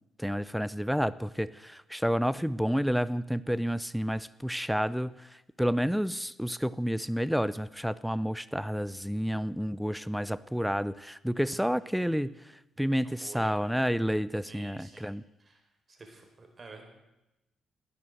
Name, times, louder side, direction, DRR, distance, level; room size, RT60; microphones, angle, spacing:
voice 1, 0.2-12.4 12.8-15.2, equal, ahead, 18 dB, 0.6 m, -30 dB
voice 2, 11.5-12.2 13.0-13.8 14.5-15.1 15.4-15.6 15.9-16.8, right 3 dB, 35° right, 4 dB, 4.3 m, -50 dB
19.0 x 9.6 x 7.9 m, 0.96 s
cardioid pair, 70°, 0 cm